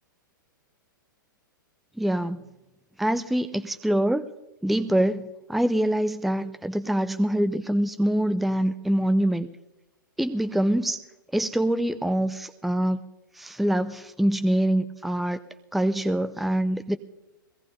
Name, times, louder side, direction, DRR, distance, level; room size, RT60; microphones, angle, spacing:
voice 1, 2.0-2.4 3.0-4.3 4.6-9.5 10.2-11.0 11.3-13.0 13.4-15.4 15.7-17.0, right 1 dB, ahead, 11 dB, 0.4 m, -24 dB
22.0 x 17.0 x 2.7 m, 0.98 s
figure-of-eight pair, 105°, 11 cm